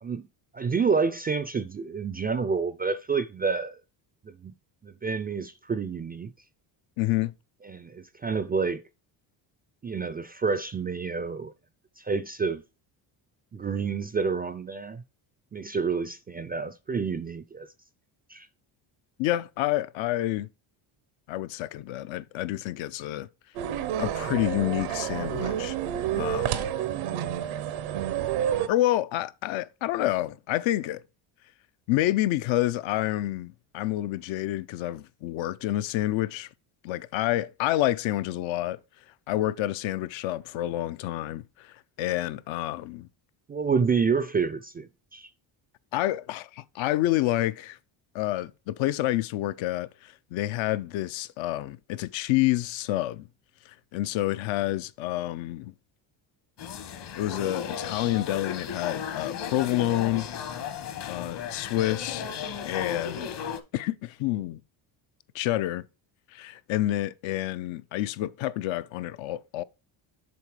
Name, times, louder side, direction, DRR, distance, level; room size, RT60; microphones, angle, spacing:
voice 1, 0.5-3.8 4.2-4.5 4.8-6.3 7.7-8.8 9.8-11.5 12.0-12.6 13.5-15.0 15.5-17.7 18.3-18.5 43.5-45.3, right 5 dB, 20° right, 0.3 m, -28 dB
voice 2, 7.0-7.3 19.2-20.5 21.3-23.3 24.0-25.8 26.1-26.7 28.7-31.0 31.9-36.5 36.8-38.8 39.3-43.1 45.9-47.8 48.1-53.3 53.7-55.7 57.2-60.3 61.1-62.2 62.6-63.3 63.7-64.6 65.3-65.8 66.3-69.6, left 15 dB, 75° left, 0.6 m, -28 dB
sound 1, 23.6-28.7, right 10 dB, 90° right, 1.0 m, -29 dB
sound 2, 56.6-63.6, left 7 dB, 55° left, 1.3 m, -35 dB
7.0 x 4.2 x 4.7 m
cardioid pair, 100°, 48 cm